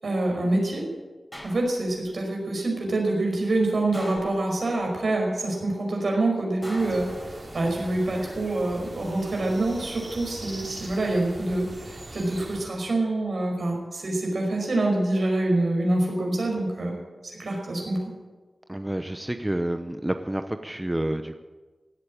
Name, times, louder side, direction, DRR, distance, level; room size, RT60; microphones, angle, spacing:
voice 1, 0.0-0.8 1.4-7.1 7.5-16.9 17.2-18.0, right 2 dB, 70° right, 1 dB, 5.2 m, -26 dB
sound 1, 1.3-2.1 3.9-4.9 6.6-7.8 9.2-9.7, equal, 10° left, 4.2 m, -42 dB
sound 2, 6.8-12.6, right 1 dB, 40° right, 3.8 m, -41 dB
voice 2, 18.7-21.3, right 1 dB, 15° right, 8 dB, 0.8 m, -29 dB
17.0 x 8.7 x 8.7 m, 1.3 s
wide cardioid pair, 70°, 0 cm